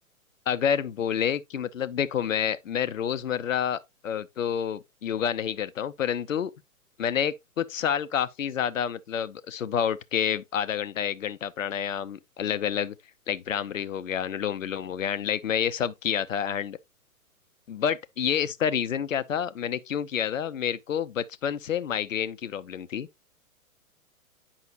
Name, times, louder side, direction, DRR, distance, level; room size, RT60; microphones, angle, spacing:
voice 1, 0.5-6.5 7.0-12.9 13.3-16.8 17.7-23.1, left 8 dB, 65° left, 0.6 m, -28 dB
8.5 x 5.6 x 2.5 m
figure-of-eight pair, 120°, 43 cm